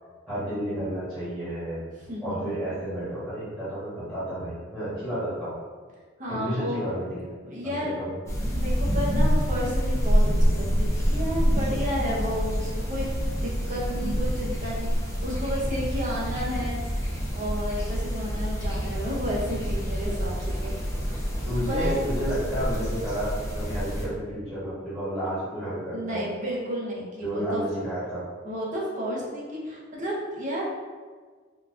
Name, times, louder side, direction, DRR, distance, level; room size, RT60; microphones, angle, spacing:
voice 1, 0.3-1.8 2.2-5.6 6.3-7.3 7.6-8.1 21.4-26.3 27.2-28.3, equal, 10° right, -14 dB, 1.1 m, -31 dB
voice 2, 2.1-2.5 6.2-6.8 7.4-7.9 8.4-13.1 13.4-14.9 15.2-16.8 17.3-20.7 21.7-22.0 25.9-27.6 28.4-30.6, equal, 40° right, -5 dB, 0.6 m, -32 dB
sound 1, 8.3-24.1, equal, 15° left, 0.5 m, -27 dB
3.7 x 2.3 x 2.4 m, 1.5 s
head